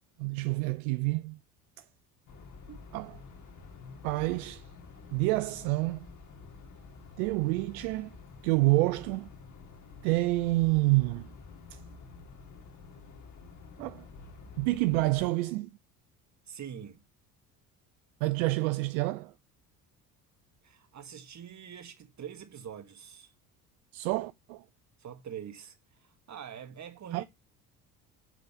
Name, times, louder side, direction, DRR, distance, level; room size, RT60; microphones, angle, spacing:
voice 1, 0.2-1.4 2.9-3.2 4.0-4.6 5.1-6.1 7.2-8.1 8.4-9.3 10.0-11.3 11.7-11.8 13.8-14.0 14.6-15.7 18.2-19.3 23.9-24.6 27.1-27.2, right 21 dB, 70° right, 0.6 m, -28 dB
sound 1, 2.3-15.3, left 4 dB, 40° left, 2.1 m, -49 dB
voice 2, 16.5-17.0 20.6-23.3 25.0-27.2, right 8 dB, 40° right, 1.9 m, -44 dB
9.3 x 4.0 x 6.9 m
hypercardioid pair, 65°, 44 cm